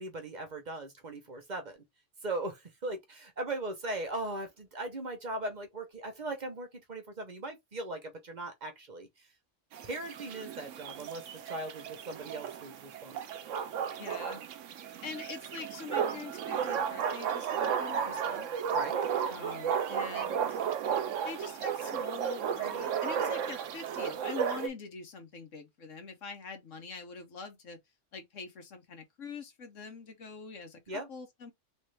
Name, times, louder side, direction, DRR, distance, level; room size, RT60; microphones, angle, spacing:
voice 1, 0.0-1.8 2.2-9.3 9.8-13.5 18.7-19.0 30.9-31.1, right 2 dB, 40° right, 0.9 m, -39 dB
sound 1, 9.7-24.7, right 8 dB, 85° right, 1.0 m, -34 dB
voice 2, 13.9-14.4 15.0-18.5 19.3-20.6 21.2-27.8 28.1-31.5, left 5 dB, 90° left, 1.5 m, -44 dB
3.3 x 3.2 x 3.3 m
omnidirectional pair, 1.3 m